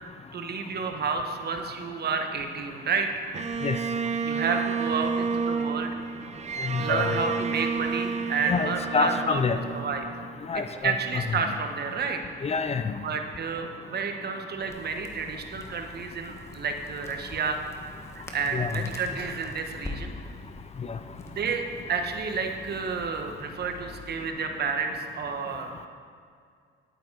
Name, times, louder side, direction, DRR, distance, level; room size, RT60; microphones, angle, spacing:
voice 1, 0.3-3.3 4.2-5.9 6.7-10.1 10.5-12.2 13.0-17.6 18.1-20.1 21.3-25.9, right 5 dB, 55° right, 4 dB, 1.2 m, -30 dB
Bowed string instrument, 3.3-10.6, right 5 dB, 35° right, 0.5 m, -30 dB
voice 2, 6.6-7.1 8.5-9.6 10.5-10.9 12.4-13.0 18.5-18.7 20.9-21.0, left 5 dB, 35° left, 10 dB, 0.6 m, -27 dB
Crackle, 14.7-24.3, left 2 dB, 15° left, 1.4 m, -45 dB
11.0 x 8.8 x 4.7 m, 2.2 s
cardioid pair, 90°, 20 cm